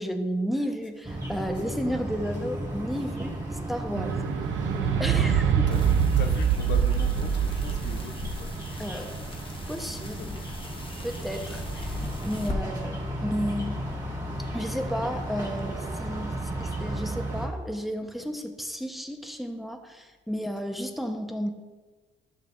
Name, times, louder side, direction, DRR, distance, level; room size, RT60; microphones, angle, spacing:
voice 1, 0.0-4.2 4.7-5.7 8.8-9.1 9.7-10.3 11.0-13.8 14.5-21.5, equal, ahead, 4 dB, 1.0 m, -33 dB
sound 1, 1.0-17.5, right 1 dB, 20° right, 2.6 m, -34 dB
sound 2, 3.9-10.4 11.2-11.3, right 8 dB, 80° right, 0.7 m, -25 dB
voice 2, 4.5-8.8 9.8-10.4, left 6 dB, 60° left, 6 dB, 0.8 m, -41 dB
sound 3, 5.7-12.6, left 2 dB, 25° left, 1.5 m, -39 dB
14.5 x 6.8 x 2.6 m, 1.3 s
cardioid pair, 90°, 20 cm